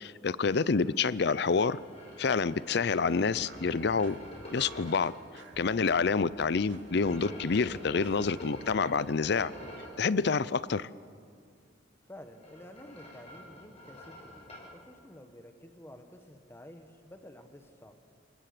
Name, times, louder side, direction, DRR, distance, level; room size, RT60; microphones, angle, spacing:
voice 1, 0.0-1.8 2.2-4.2 4.5-5.1 5.6-9.5 10.0-10.9, left 5 dB, 60° left, 18 dB, 0.5 m, -28 dB
sound 1, 0.6-5.2 6.8-10.0 12.2-14.7, left 1 dB, 35° left, 6.5 m, -48 dB
sound 2, 1.4-9.4, right 2 dB, 80° right, 2.4 m, -53 dB
voice 2, 12.0-18.0, left 1 dB, 15° left, 6 dB, 1.5 m, -51 dB
28.0 x 18.5 x 6.8 m, 2.2 s
head